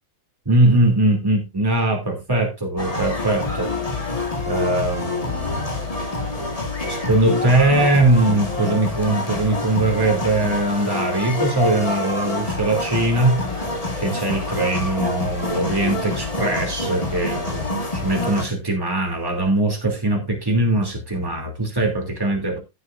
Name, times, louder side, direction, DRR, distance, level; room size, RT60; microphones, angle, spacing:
voice 1, 0.4-3.7 4.5-5.7 6.9-13.5 14.0-22.6, right 2 dB, 10° right, 1 dB, 2.8 m, -21 dB
sound 1, 2.8-18.4, left 2 dB, 20° left, 1.6 m, -27 dB
15.0 x 7.2 x 2.6 m, 0.25 s
omnidirectional pair, 2.2 m